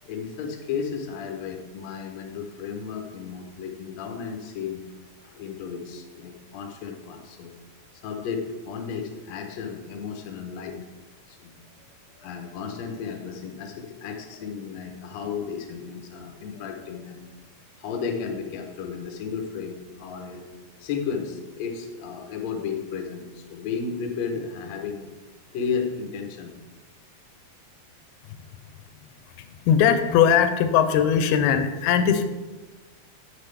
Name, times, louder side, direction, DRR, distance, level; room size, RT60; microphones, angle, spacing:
voice 1, 0.0-4.8 5.2-7.5 8.0-10.8 11.3-11.6 12.1-17.2 17.8-20.4 20.8-25.1 25.5-26.5, left 6 dB, 75° left, 3 dB, 1.6 m, -33 dB
voice 2, 29.7-32.3, left 8 dB, 90° left, 9 dB, 2.5 m, -19 dB
8.0 x 7.4 x 3.3 m, 1.2 s
omnidirectional pair, 4.3 m